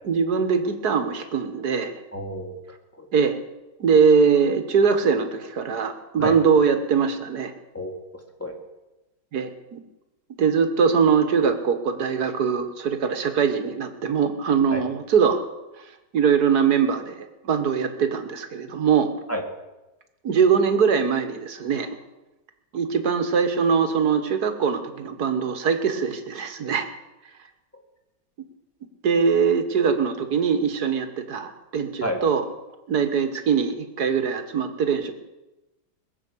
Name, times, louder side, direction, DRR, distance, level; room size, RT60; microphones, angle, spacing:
voice 1, 0.1-1.9 3.1-3.4 3.8-7.5 9.3-9.8 10.4-15.4 16.1-17.1 17.4-19.1 20.2-21.9 22.7-26.9 29.0-32.4 32.9-35.1, right 6 dB, 55° right, 8 dB, 1.8 m, -22 dB
voice 2, 2.1-3.1 6.2-6.4 7.7-8.6 14.7-14.8 19.3-19.4 27.7-27.8 32.0-32.2, equal, 5° left, 3 dB, 2.0 m, -31 dB
21.5 x 7.2 x 8.4 m, 1.0 s
omnidirectional pair, 2.1 m